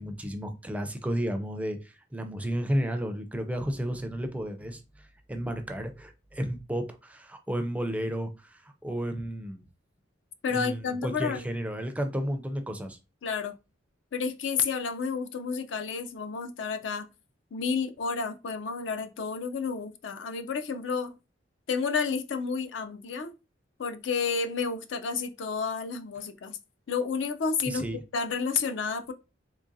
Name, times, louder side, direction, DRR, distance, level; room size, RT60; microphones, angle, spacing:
voice 1, 0.0-9.6 10.5-13.0 27.7-28.0, equal, 5° right, 0.4 m, -32 dB
voice 2, 10.4-11.5 13.2-13.6 14.1-17.1 17.5-21.1 21.7-23.3 23.8-26.6 26.9-27.8 28.1-29.1, left 5 dB, 65° left, 0.5 m, -30 dB
3.7 x 3.1 x 2.6 m
head